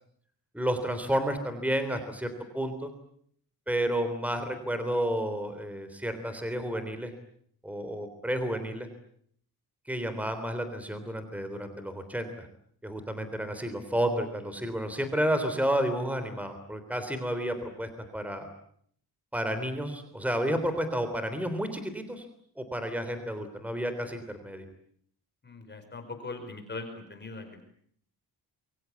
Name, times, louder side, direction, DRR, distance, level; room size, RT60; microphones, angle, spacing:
voice 1, 0.5-2.9 3.7-7.1 7.6-8.9 9.9-12.5 12.8-18.5 19.3-22.2 22.6-24.7, equal, 5° right, 9 dB, 3.5 m, -31 dB
voice 2, 25.4-27.6, left 3 dB, 25° left, 6 dB, 4.8 m, -40 dB
27.5 x 24.0 x 8.4 m, 0.64 s
wide cardioid pair, 160°, 40 cm